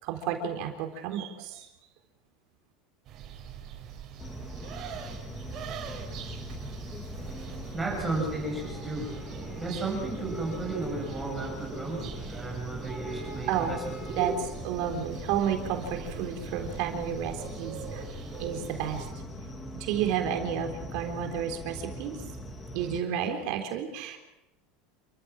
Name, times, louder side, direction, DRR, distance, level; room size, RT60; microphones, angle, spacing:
voice 1, 0.0-1.7 13.5-13.8 14.2-14.3 14.6-18.0 18.4-19.1 19.7-22.2 22.7-24.2, right 9 dB, 55° right, 4 dB, 3.8 m, -31 dB
sound 1, 3.1-19.1, right 9 dB, 40° right, 5.2 m, -44 dB
sound 2, 4.2-23.0, left 1 dB, 15° left, 2.4 m, -41 dB
voice 2, 7.2-14.3, right 2 dB, 5° right, -2 dB, 7.8 m, -34 dB
28.0 x 15.0 x 7.6 m, 0.96 s
supercardioid pair, 155°, 0 cm